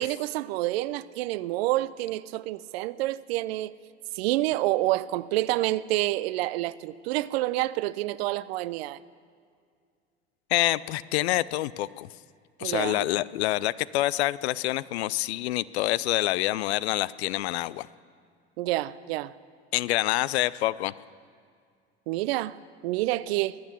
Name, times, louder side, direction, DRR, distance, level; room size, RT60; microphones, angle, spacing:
voice 1, 0.0-3.7 4.1-9.0 12.6-13.1 18.6-19.3 22.1-22.6 22.8-23.6, right 17 dB, 70° right, 0.5 m, -28 dB
voice 2, 10.5-12.1 12.6-17.9 19.7-20.9, left 16 dB, 80° left, 0.5 m, -27 dB
20.5 x 9.2 x 7.0 m
hypercardioid pair, 80°, 32 cm